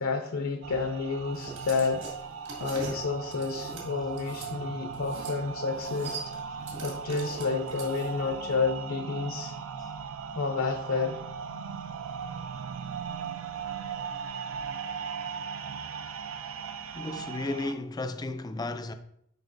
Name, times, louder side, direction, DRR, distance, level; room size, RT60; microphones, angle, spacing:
voice 1, 0.0-2.0 2.6-6.2 6.8-9.5 10.4-11.2, left 4 dB, 75° left, 0.6 m, -30 dB
sound 1, 0.6-17.7, right 6 dB, 75° right, 0.4 m, -38 dB
sound 2, 1.3-4.5 4.9-5.4 5.6-8.3, right 3 dB, 55° right, 2.1 m, -42 dB
voice 2, 16.9-18.9, left 2 dB, 20° left, 0.4 m, -34 dB
10.5 x 3.8 x 2.6 m
head